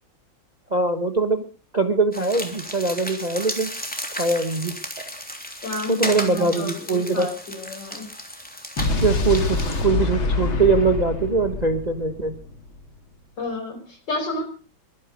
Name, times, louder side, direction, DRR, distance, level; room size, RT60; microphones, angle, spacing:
voice 1, 0.7-1.4 1.7-3.7 4.1-5.1 5.9-7.3 9.0-12.4, right 3 dB, 25° right, 7 dB, 1.1 m, -22 dB
sound 1, 2.1-9.8, equal, 5° left, 3.2 m, -34 dB
voice 2, 5.6-8.0 13.4-14.4, left 2 dB, 60° left, 6 dB, 5.4 m, -31 dB
Explosion, 8.8-12.8, left 3 dB, 75° left, 3.2 m, -25 dB
23.0 x 10.5 x 5.2 m, 0.37 s
omnidirectional pair, 2.2 m